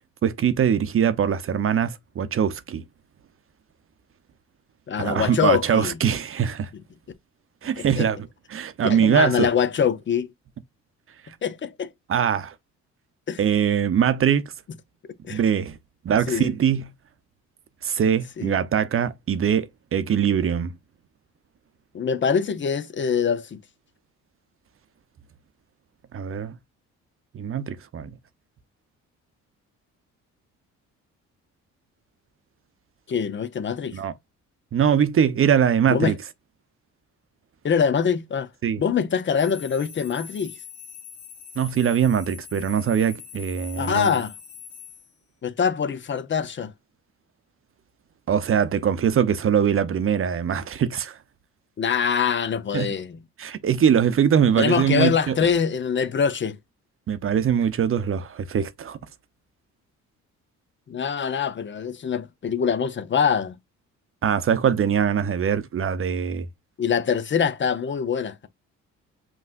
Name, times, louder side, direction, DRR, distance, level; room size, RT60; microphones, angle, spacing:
voice 1, 0.2-2.8 5.0-6.7 7.6-9.5 11.2-11.4 12.1-12.5 13.4-14.4 15.3-15.8 16.0-16.9 17.8-20.8 26.1-26.5 27.3-28.1 33.9-34.1 34.7-36.1 38.6-38.8 41.6-44.1 48.3-51.2 52.7-52.9 53.4-55.4 57.1-59.0 64.2-66.5, right 8 dB, 45° right, 0.7 m, -22 dB
voice 2, 4.9-6.0 7.8-8.1 8.8-10.3 11.4-11.9 13.3-13.4 15.3-15.4 16.3-16.5 18.4-18.5 21.9-23.6 33.1-34.0 35.9-36.1 37.6-38.5 38.8-40.5 43.8-44.3 45.4-46.7 51.8-53.2 54.6-56.6 60.9-63.5 66.8-68.5, left 7 dB, 40° left, 0.7 m, -24 dB
sound 1, 39.4-45.1, left 8 dB, 65° left, 1.6 m, -43 dB
5.5 x 3.0 x 2.4 m
cardioid pair, 90°, 30 cm